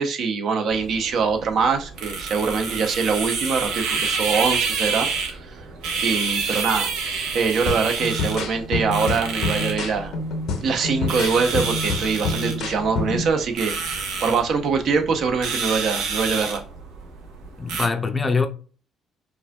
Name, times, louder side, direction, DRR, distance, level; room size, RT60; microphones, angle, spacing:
voice 1, 0.0-5.6 6.0-6.9 7.3-10.1 10.6-16.6, right 5 dB, 60° right, 0.8 m, -23 dB
sound 1, 0.7-17.9, right 5 dB, 90° right, 1.1 m, -29 dB
sound 2, 7.7-13.3, left 3 dB, 75° left, 0.9 m, -28 dB
voice 2, 17.6-18.5, left 4 dB, 25° left, 0.5 m, -23 dB
4.7 x 2.6 x 2.2 m
cardioid pair, 105°, 0 cm